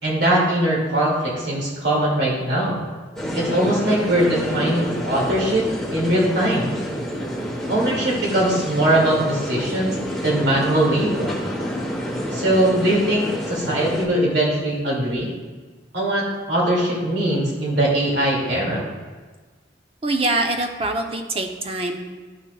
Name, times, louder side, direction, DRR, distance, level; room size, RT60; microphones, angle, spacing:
voice 1, 0.0-2.8 3.3-5.7 5.9-6.7 7.7-10.0 10.2-11.4 12.3-15.3 15.9-18.8, right 1 dB, 65° right, -4 dB, 2.3 m, -21 dB
sound 1, 3.2-14.1, equal, ahead, 1.1 m, -28 dB
voice 2, 20.0-22.0, right 2 dB, 30° right, 3 dB, 0.7 m, -24 dB
12.5 x 5.8 x 2.3 m, 1.4 s
head